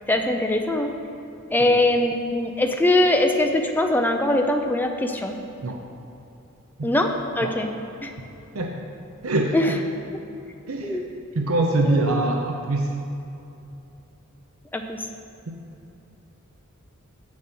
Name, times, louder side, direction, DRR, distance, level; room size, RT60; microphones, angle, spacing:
voice 1, 0.1-1.0 1.5-5.4 6.8-7.7 8.0-8.1 9.5-9.7 10.8-11.0 11.9-12.0 14.7-15.0, left 1 dB, 10° left, 3 dB, 0.5 m, -22 dB
voice 2, 9.2-9.7 10.7-11.0 11.3-12.9 15.5-15.6, right 2 dB, 75° right, 2 dB, 0.7 m, -24 dB
8.1 x 7.3 x 5.9 m, 2.8 s
head